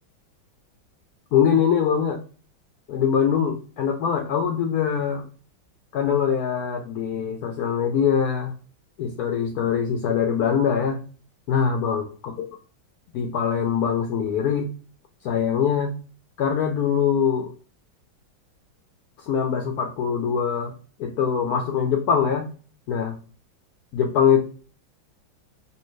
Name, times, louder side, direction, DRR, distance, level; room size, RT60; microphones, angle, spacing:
voice 1, 1.3-2.2 2.9-5.3 5.9-8.5 9.0-11.0 11.5-12.5 13.1-14.7 15.2-15.9 16.4-17.5 19.2-20.7 21.0-22.4 22.9-23.2 23.9-24.4, left 7 dB, 80° left, 3 dB, 0.8 m, -23 dB
3.3 x 2.7 x 3.1 m, 0.39 s
omnidirectional pair, 2.1 m